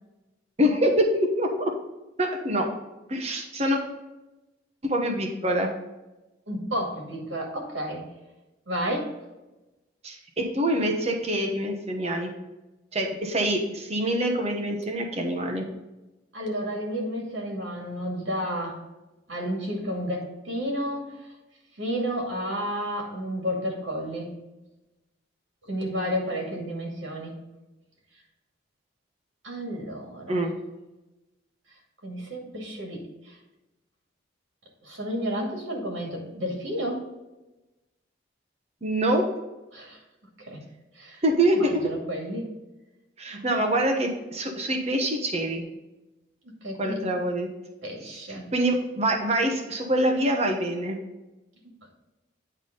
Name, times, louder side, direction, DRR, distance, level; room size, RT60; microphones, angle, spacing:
voice 1, 0.6-1.7 2.2-2.7 3.1-3.8 4.8-5.7 10.0-12.3 12.9-15.6 30.3-30.5 38.8-39.2 41.2-41.8 43.2-45.6 46.8-47.5 48.5-51.0, right 1 dB, 35° right, 3 dB, 1.1 m, -25 dB
voice 2, 6.5-8.0 8.7-9.1 16.3-18.8 19.3-21.2 21.8-24.3 25.6-27.3 29.4-30.5 32.0-33.4 34.8-37.0 39.7-40.0 40.5-40.6 41.0-41.2 41.5-42.5 43.3-43.5 46.4-46.9 47.8-48.5, equal, 85° right, -1 dB, 2.3 m, -31 dB
9.7 x 3.6 x 5.2 m, 1.0 s
head